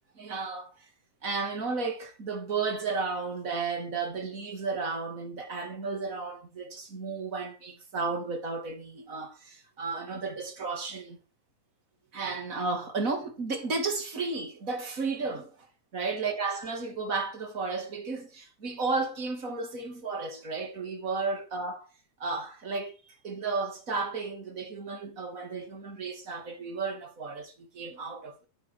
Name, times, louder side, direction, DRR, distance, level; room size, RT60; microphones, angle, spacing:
voice 1, 0.1-0.7 1.2-11.2 12.1-15.7 15.9-21.8 22.2-28.3, right 4 dB, 25° right, 2.7 m, -33 dB
11.5 x 9.8 x 4.9 m
omnidirectional pair, 3.6 m